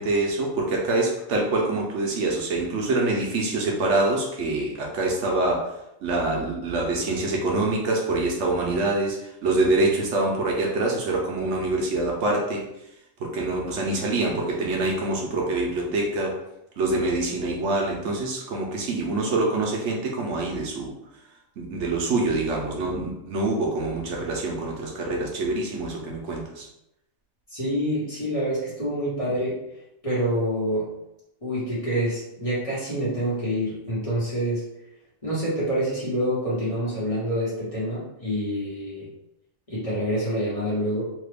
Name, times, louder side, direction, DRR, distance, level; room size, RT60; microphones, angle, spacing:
voice 1, 0.0-5.7 6.0-12.6 13.2-16.3 16.8-20.9 21.6-26.7, right 2 dB, 70° right, -1 dB, 0.9 m, -25 dB
voice 2, 27.5-29.6 30.0-30.9 31.4-34.7 35.2-39.1 39.7-41.0, equal, 30° left, -9 dB, 1.1 m, -27 dB
2.9 x 2.3 x 3.3 m, 0.85 s
omnidirectional pair, 1.3 m